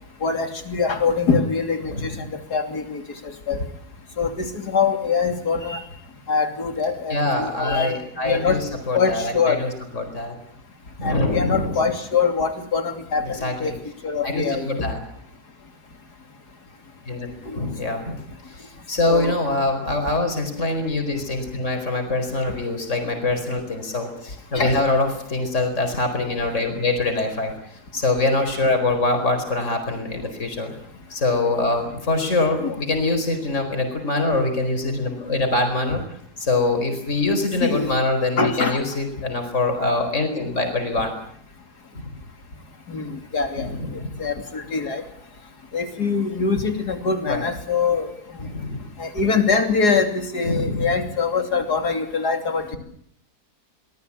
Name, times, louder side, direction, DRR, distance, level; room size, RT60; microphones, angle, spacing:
voice 1, 0.2-2.1 2.5-3.0 3.5-3.6 4.2-5.8 6.3-8.0 8.2-8.6 8.9-9.6 11.0-13.7 14.0-14.9 17.5-17.6 19.1-19.3 24.6-24.8 32.6-32.8 37.6-37.9 38.4-38.8 42.9-43.7 44.2-45.0 45.7-48.1 49.0-52.8, left 5 dB, 85° left, 6 dB, 3.4 m, -23 dB
voice 2, 7.1-8.6 8.9-10.3 11.0-11.8 13.3-13.8 14.2-15.0 17.0-17.3 17.5-18.2 18.5-27.5 27.9-30.7 31.1-36.0 36.4-41.1 41.9-42.1 43.7-44.1 47.2-47.4 48.4-48.8 50.4-50.9, left 2 dB, 50° left, 6 dB, 4.9 m, -24 dB
24.5 x 19.5 x 8.6 m, 0.67 s
omnidirectional pair, 1.7 m